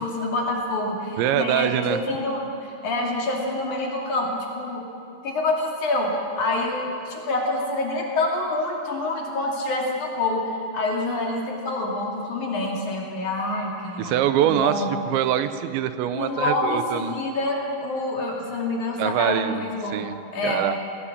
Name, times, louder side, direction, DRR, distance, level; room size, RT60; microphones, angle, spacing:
voice 1, 0.0-4.8 5.2-14.9 16.1-20.1 20.3-20.6, left 2 dB, 50° left, -1 dB, 3.7 m, -27 dB
voice 2, 1.2-2.0 14.0-17.2 19.0-20.8, right 11 dB, 85° right, 11 dB, 3.1 m, -24 dB
19.0 x 18.5 x 8.6 m, 2.7 s
omnidirectional pair, 5.1 m